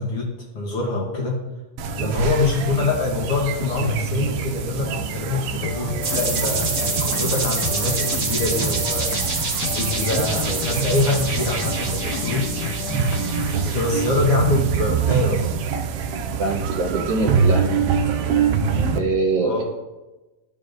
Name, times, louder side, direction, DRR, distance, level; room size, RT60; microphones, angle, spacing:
voice 1, 0.0-1.4 1.9-12.5 13.5-15.5 19.4-19.6, left 3 dB, 60° left, -2 dB, 1.6 m, -25 dB
sound 1, 1.8-19.0, right 6 dB, 90° right, 1.3 m, -25 dB
sound 2, 5.6-13.6, left 8 dB, 90° left, 2.0 m, -32 dB
sound 3, 6.0-14.5, right 4 dB, 50° right, 1.3 m, -27 dB
voice 2, 16.4-17.7 18.9-19.6, right 3 dB, 65° right, 0 dB, 1.7 m, -23 dB
13.5 x 5.0 x 2.5 m, 1.1 s
omnidirectional pair, 3.4 m